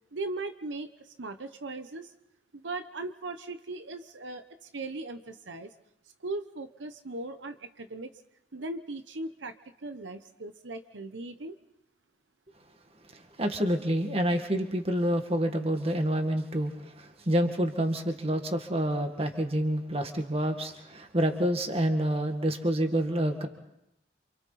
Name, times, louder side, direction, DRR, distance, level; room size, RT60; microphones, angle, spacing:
voice 1, 0.1-2.1 2.5-5.7 6.2-8.1 8.5-9.5 9.8-11.6, right 2 dB, 90° right, 10 dB, 1.0 m, -38 dB
voice 2, 13.1-23.5, right 1 dB, 35° right, 5 dB, 1.9 m, -28 dB
28.0 x 27.0 x 4.2 m, 0.81 s
head